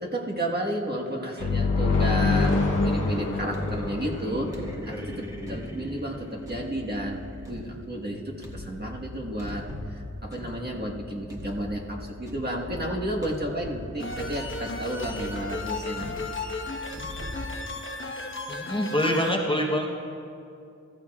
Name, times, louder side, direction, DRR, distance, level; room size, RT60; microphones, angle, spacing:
voice 1, 0.0-2.6 2.8-7.2 7.5-16.2, right 1 dB, 30° right, -2 dB, 1.5 m, -32 dB
sound 1, 1.4-5.1, left 3 dB, 80° left, 1.0 m, -25 dB
sound 2, 1.8-17.5, left 1 dB, 10° right, 1.7 m, -39 dB
sound 3, 14.0-19.3, left 2 dB, 40° left, 1.1 m, -35 dB
voice 2, 18.5-19.9, equal, 15° left, -1 dB, 1.0 m, -25 dB
15.0 x 14.5 x 2.4 m, 2.5 s
wide cardioid pair, 50°, 30 cm